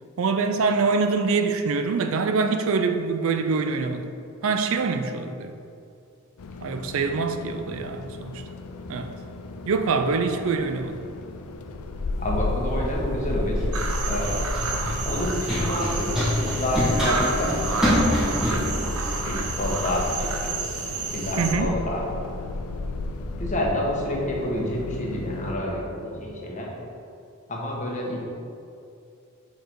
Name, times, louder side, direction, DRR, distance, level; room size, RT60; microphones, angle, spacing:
voice 1, 0.2-4.0 4.4-5.5 6.6-8.4 8.9-9.2 9.7-11.0 21.4-21.7, right 4 dB, 65° right, 7 dB, 0.4 m, -24 dB
sound 1, 6.4-25.5, left 2 dB, 90° left, 0.5 m, -34 dB
Run, 12.1-20.1, equal, ahead, 1.6 m, -28 dB
voice 2, 12.2-13.6 14.0-14.6 15.0-20.6 21.1-22.2 23.4-26.7 27.5-28.2, left 1 dB, 35° left, -3 dB, 1.3 m, -29 dB
sound 2, 13.7-21.5, right 4 dB, 85° right, 0.9 m, -31 dB
6.6 x 4.7 x 4.6 m, 2.5 s
head